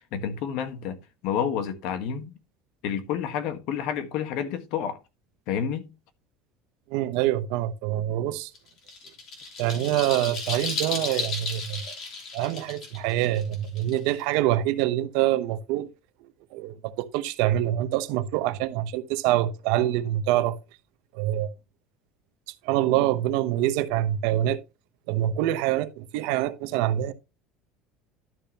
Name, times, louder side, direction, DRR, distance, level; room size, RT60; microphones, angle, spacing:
voice 1, 0.1-2.4 2.8-5.0 5.5-5.9, left 8 dB, 55° left, 1.4 m, -29 dB
voice 2, 6.9-8.5 9.6-11.9 12.3-15.9 16.5-20.6 21.1-21.5 22.6-24.6 25.1-27.1, right 13 dB, 65° right, 0.9 m, -25 dB
sound 1, 8.5-14.3, left 4 dB, 35° left, 3.1 m, -34 dB
12.0 x 6.8 x 2.9 m
cardioid pair, 175°, 0 cm